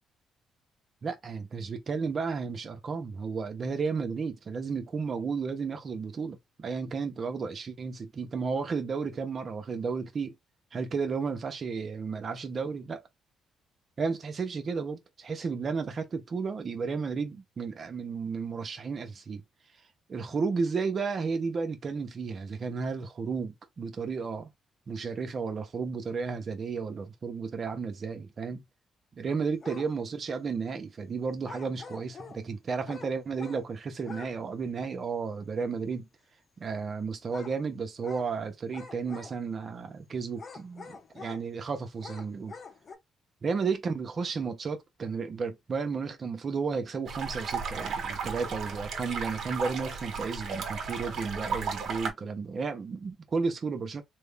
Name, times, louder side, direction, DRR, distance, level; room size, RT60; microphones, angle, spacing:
voice 1, 1.0-10.3 10.7-13.0 14.0-19.4 20.1-24.5 24.9-28.6 29.2-36.1 36.6-42.6 43.4-54.0, right 5 dB, 45° right, 0.9 m, -33 dB
sound 1, 29.6-29.9 31.4-32.4 32.8-33.7 34.0-34.4 34.6-34.7 37.3-37.6 38.0-38.3 38.7-39.6 40.3-41.4 42.0-42.9, left 4 dB, 45° left, 0.9 m, -45 dB
sound 2, 47.1-52.1, right 5 dB, 65° right, 1.3 m, -34 dB
3.3 x 2.2 x 3.4 m
cardioid pair, 90°, 0 cm